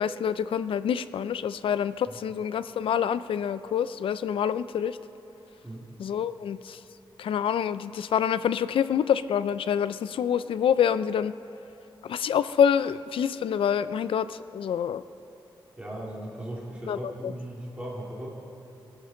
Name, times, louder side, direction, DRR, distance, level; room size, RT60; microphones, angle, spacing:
voice 1, 0.0-5.0 6.0-6.8 7.2-11.4 12.0-15.0 16.9-17.3, left 8 dB, 85° left, 14 dB, 0.4 m, -26 dB
voice 2, 15.8-18.3, right 1 dB, 15° right, -5 dB, 2.2 m, -37 dB
25.0 x 9.4 x 3.8 m, 3.0 s
wide cardioid pair, 160°, 9 cm